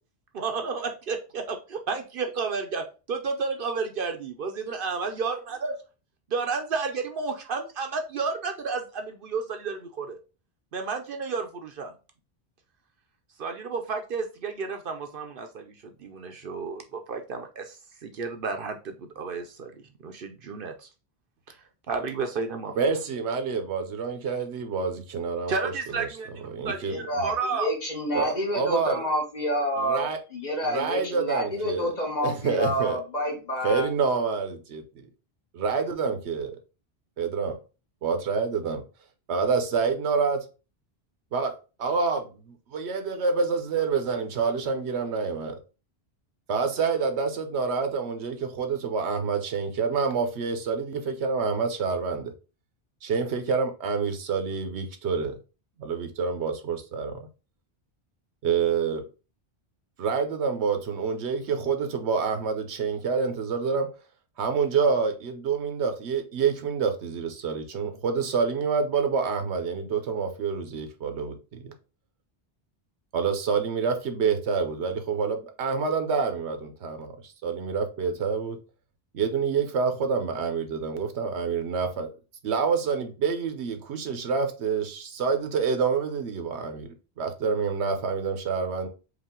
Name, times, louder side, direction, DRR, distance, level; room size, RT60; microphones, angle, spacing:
voice 1, 0.3-5.7 6.3-10.2 10.7-11.9 13.4-19.8 20.0-20.9 21.5-21.6 21.9-22.7 25.5-26.3 26.6-27.7, right 4 dB, 60° right, 0.8 m, -32 dB
voice 2, 22.8-26.1 26.4-27.3 28.1-29.0 29.8-30.2 30.6-31.9 32.2-33.0 33.6-35.1 35.5-36.5 37.2-37.6 38.0-38.8 39.3-40.4 41.3-41.5 41.8-42.2 42.7-45.6 46.5-52.3 53.0-55.3 55.8-57.3 58.4-59.0 60.0-63.9 64.4-71.7 73.1-78.6 79.1-82.1 82.4-88.9, right 5 dB, 85° right, 1.1 m, -27 dB
voice 3, 26.9-33.9, equal, 40° left, 1.3 m, -29 dB
4.9 x 2.5 x 3.6 m
omnidirectional pair, 1.1 m